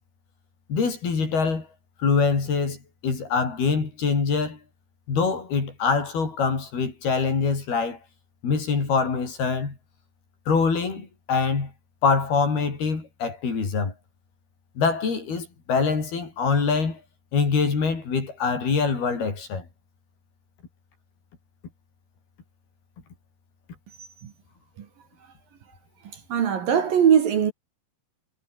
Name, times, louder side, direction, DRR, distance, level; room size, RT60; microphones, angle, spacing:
voice 1, 0.7-1.7 2.0-4.6 5.1-8.0 8.4-9.8 10.5-11.7 12.0-13.9 14.8-17.0 17.3-19.7, left 5 dB, 55° left, 7.6 m, -24 dB
voice 2, 26.0-27.5, right 8 dB, 55° right, 3.5 m, -21 dB
omnidirectional pair, 5.3 m